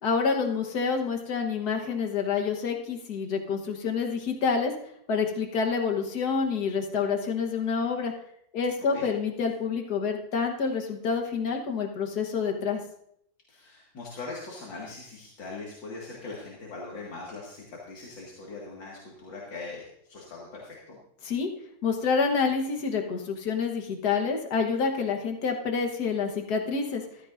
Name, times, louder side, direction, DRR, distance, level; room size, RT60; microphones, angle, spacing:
voice 1, 0.0-4.7 5.1-8.1 8.5-12.8 21.2-21.5 21.8-27.0, left 5 dB, 60° left, 3 dB, 1.7 m, -28 dB
voice 2, 13.5-21.0, left 3 dB, 90° left, -4 dB, 2.7 m, -41 dB
15.0 x 12.5 x 2.6 m, 0.72 s
omnidirectional pair, 2.0 m